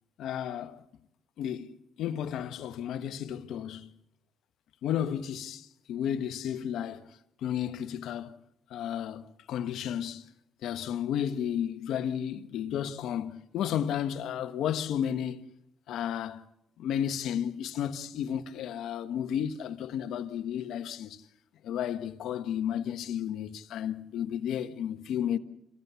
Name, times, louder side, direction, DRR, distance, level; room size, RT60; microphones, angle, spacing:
voice 1, 0.2-0.8 1.4-3.9 4.8-7.1 7.4-8.4 8.7-10.3 10.6-15.5 15.9-16.4 16.8-21.2 21.6-25.4, left 9 dB, 80° left, 1.3 m, -33 dB
28.5 x 15.5 x 8.3 m
cardioid pair, 90°, 0 cm